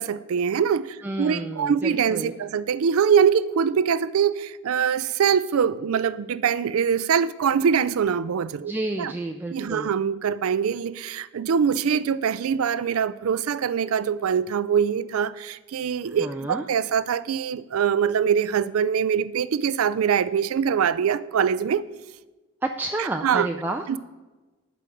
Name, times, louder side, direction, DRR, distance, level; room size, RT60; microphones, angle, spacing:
voice 1, 0.0-8.7 9.0-9.1 9.5-21.8 23.0-23.5 23.9-24.0, right 7 dB, 80° right, 0.4 m, -23 dB
voice 2, 1.0-2.4 8.7-9.9 16.1-16.6 22.6-23.8, right 2 dB, 10° right, 0.3 m, -30 dB
11.0 x 5.1 x 7.6 m
head